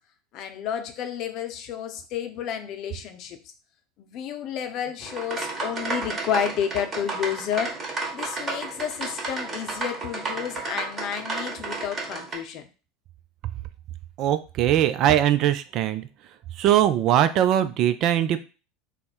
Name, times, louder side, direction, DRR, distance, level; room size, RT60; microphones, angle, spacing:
voice 1, 0.3-3.4 4.0-7.7 8.1-12.7, left 9 dB, 50° left, 7 dB, 0.6 m, -31 dB
sound 1, 5.0-12.3, right 3 dB, 35° right, 1.2 m, -32 dB
voice 2, 14.2-16.0 16.6-18.4, right 11 dB, 50° right, 12 dB, 0.3 m, -21 dB
3.3 x 2.1 x 4.3 m, 0.33 s
hypercardioid pair, 75°, 0 cm